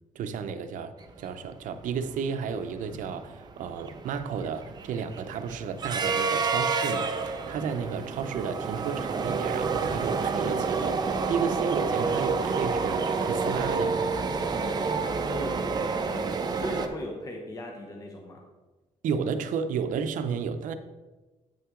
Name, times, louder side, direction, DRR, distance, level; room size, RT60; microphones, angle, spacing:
voice 1, 0.1-14.0 19.0-20.7, right 6 dB, 80° right, 0.6 m, -32 dB
sound 1, 1.5-1.6 1.8-2.1 2.5-16.9, right 4 dB, 30° right, 0.6 m, -29 dB
voice 2, 15.3-18.4, left 1 dB, 25° left, 0.9 m, -38 dB
8.7 x 5.7 x 3.7 m
cardioid pair, 150°, 13 cm